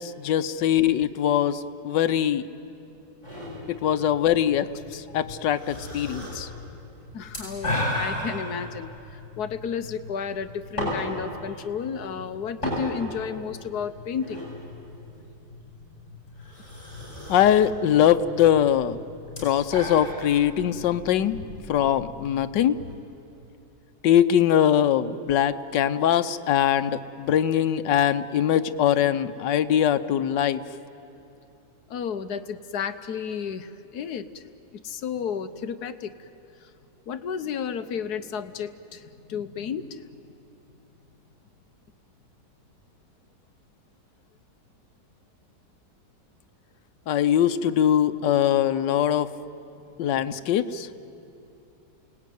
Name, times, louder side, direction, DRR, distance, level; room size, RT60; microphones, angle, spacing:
voice 1, 0.0-2.5 3.7-6.5 17.3-19.0 19.4-21.4 21.7-22.8 24.0-30.6 47.1-49.3 50.0-50.9, left 10 dB, 90° left, 12 dB, 1.4 m, -22 dB
sound 1, 3.2-22.9, left 1 dB, 40° left, 8.4 m, -36 dB
voice 2, 7.1-14.5 31.9-34.4 34.8-36.3 36.6-36.7 37.1-40.0, left 7 dB, 65° left, 10 dB, 1.4 m, -32 dB
28.5 x 19.0 x 9.3 m, 2.8 s
omnidirectional pair, 1.8 m